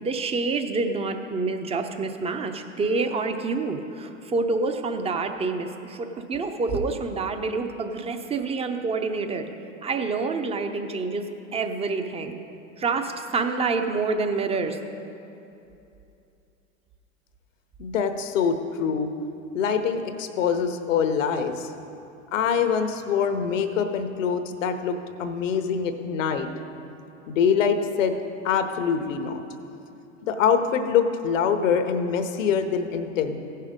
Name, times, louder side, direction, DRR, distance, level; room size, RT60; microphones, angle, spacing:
voice 1, 0.0-9.5 9.8-12.4 12.8-14.8, right 4 dB, 15° right, 6 dB, 0.6 m, -27 dB
voice 2, 17.8-19.1 19.5-21.7 22.3-26.5 27.3-28.2 28.4-29.4 30.2-33.4, left 7 dB, 70° left, 8 dB, 0.9 m, -24 dB
15.5 x 5.7 x 5.1 m, 2.7 s
hypercardioid pair, 95°, 40 cm